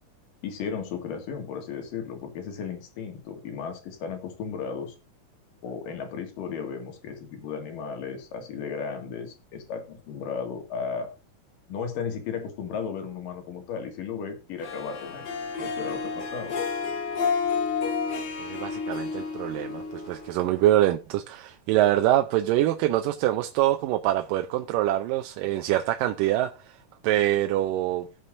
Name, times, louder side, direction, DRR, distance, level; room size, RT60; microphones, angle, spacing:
voice 1, 0.4-4.9 5.6-11.1 11.7-15.3 15.6-16.6, left 6 dB, 90° left, 3.6 m, -35 dB
Harp, 14.6-20.9, left 5 dB, 55° left, 2.7 m, -31 dB
voice 2, 18.4-26.8 27.0-28.1, right 14 dB, 85° right, 2.3 m, -25 dB
19.0 x 7.1 x 2.6 m
omnidirectional pair, 3.8 m